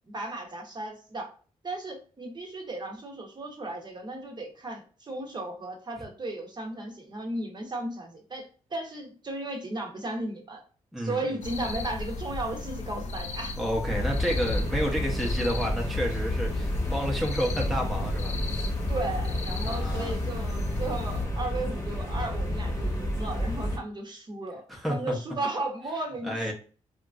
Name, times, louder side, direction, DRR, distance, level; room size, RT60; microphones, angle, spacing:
voice 1, 0.1-1.3 1.6-10.6 11.0-13.6 18.9-24.6 24.9-26.5, right 2 dB, 35° right, 2 dB, 0.8 m, -35 dB
sound 1, 11.4-21.3, left 2 dB, 65° left, 0.5 m, -36 dB
voice 2, 13.6-18.3 19.7-20.1 24.7-25.1 26.2-26.5, equal, ahead, -1 dB, 0.6 m, -30 dB
sound 2, 13.8-23.8, left 1 dB, 20° left, 1.0 m, -30 dB
2.9 x 2.5 x 2.3 m, 0.40 s
cardioid pair, 80°, 13 cm